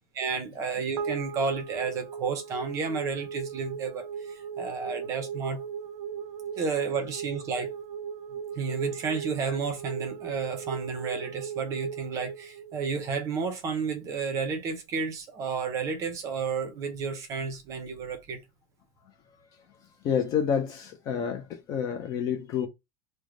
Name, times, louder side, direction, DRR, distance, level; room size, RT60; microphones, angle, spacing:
voice 1, 0.1-5.6 6.6-7.7 8.6-18.4, right 5 dB, 20° right, 0.6 m, -32 dB
sound 1, 1.0-13.5, right 7 dB, 85° right, 0.5 m, -38 dB
voice 2, 20.0-22.7, left 8 dB, 25° left, 0.4 m, -28 dB
3.2 x 2.1 x 3.6 m
supercardioid pair, 180°, 14 cm